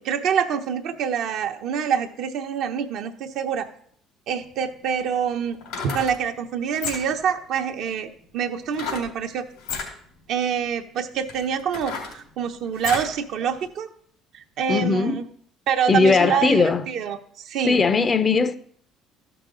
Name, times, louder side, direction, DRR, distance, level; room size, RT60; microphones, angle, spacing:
voice 1, 0.0-3.7 4.3-5.6 5.9-9.5 10.3-13.9 14.3-15.2 15.7-17.8, right 7 dB, 65° right, 0.9 m, -26 dB
sound 1, 4.4-4.5 5.5-6.2 6.7-7.3 8.7-9.1 9.6-9.9 10.6-10.7 11.3-13.2 13.6-13.7, left 5 dB, 85° left, 2.9 m, -32 dB
voice 2, 14.7-15.2 15.9-16.8 17.6-18.6, left 4 dB, 35° left, 0.6 m, -19 dB
13.5 x 5.9 x 3.8 m
supercardioid pair, 70°, 0 cm